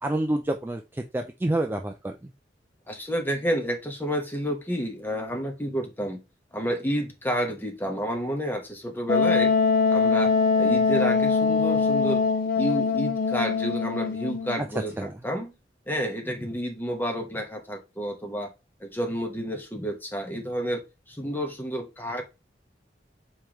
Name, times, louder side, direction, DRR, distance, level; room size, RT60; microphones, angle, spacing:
voice 1, 0.0-2.3 14.6-14.7 15.0-15.1, right 1 dB, 10° right, 0.3 m, -28 dB
voice 2, 2.9-6.2 6.5-9.5 9.9-12.3 12.5-15.5 15.9-18.5 18.8-22.2, equal, 10° left, 1.0 m, -30 dB
Wind instrument woodwind instrument, 9.1-14.6, left 5 dB, 55° left, 0.6 m, -22 dB
4.6 x 3.2 x 3.5 m
head